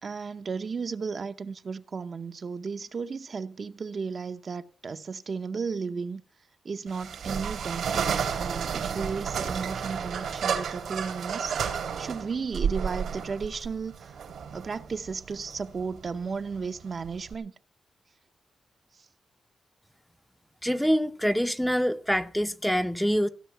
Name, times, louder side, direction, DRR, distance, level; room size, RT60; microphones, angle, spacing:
voice 1, 0.0-6.2 6.6-8.1 8.3-11.5 12.0-14.2 14.5-17.5, right 5 dB, 40° right, 0.7 m, -34 dB
sound 1, 6.9-17.3, right 7 dB, 80° right, 2.5 m, -32 dB
voice 2, 20.6-23.3, equal, ahead, 0.6 m, -25 dB
16.5 x 6.5 x 9.1 m
wide cardioid pair, 165°, 0 cm